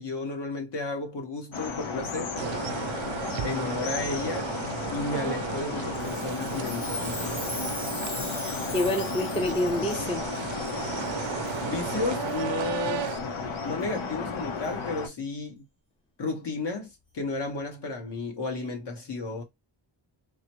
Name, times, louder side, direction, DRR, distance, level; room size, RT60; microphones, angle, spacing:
voice 1, 0.0-2.3 3.4-4.5 4.9-7.4 11.6-13.1 13.6-15.7 16.2-16.9 17.1-19.4, left 3 dB, 60° left, 1.3 m, -33 dB
sound 1, 1.5-15.1, left 4 dB, 75° left, 0.9 m, -34 dB
sound 2, 2.4-13.2, right 11 dB, 70° right, 0.5 m, -35 dB
Chime, 5.9-10.0 10.7-10.8 11.4-11.6 12.2-12.4 13.1-13.2 13.8-13.9 14.6-14.7, left 1 dB, 30° left, 1.9 m, -39 dB
voice 2, 8.7-10.2, left 1 dB, 10° left, 0.5 m, -27 dB
3.9 x 2.1 x 2.9 m
wide cardioid pair, 165°, 48 cm